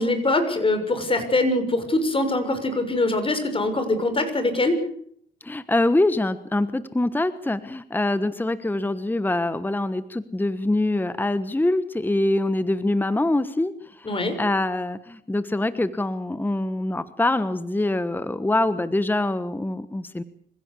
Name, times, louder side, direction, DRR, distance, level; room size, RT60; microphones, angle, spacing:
voice 1, 0.0-4.8 14.0-14.4, left 2 dB, 25° left, 8 dB, 6.4 m, -23 dB
voice 2, 5.4-20.2, left 2 dB, 10° left, 13 dB, 1.2 m, -24 dB
26.0 x 16.0 x 8.4 m, 0.66 s
cardioid pair, 90°, 20 cm